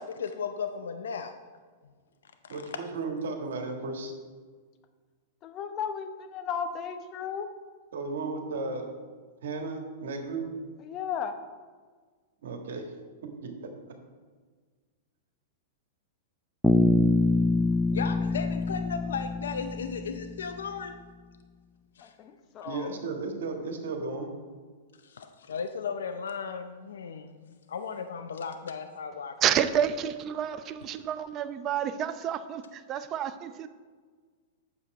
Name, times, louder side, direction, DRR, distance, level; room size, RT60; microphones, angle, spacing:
voice 1, 0.0-1.3 2.4-3.2 17.9-20.9 22.0-22.1 25.0-29.3, left 6 dB, 80° left, 8 dB, 0.5 m, -36 dB
voice 2, 2.5-4.1 7.9-8.9 9.4-10.5 12.4-12.9 13.2-13.7 22.6-24.3, right 3 dB, 75° right, 4 dB, 1.6 m, -34 dB
voice 3, 5.4-7.5 10.8-11.3 22.0-23.0, left 7 dB, 35° left, 8 dB, 0.9 m, -35 dB
Bass guitar, 16.6-20.5, left 2 dB, 5° left, 0.4 m, -25 dB
voice 4, 29.4-33.7, right 9 dB, 35° right, 11 dB, 0.6 m, -29 dB
8.4 x 7.0 x 4.8 m, 1.5 s
hypercardioid pair, 110°, 0 cm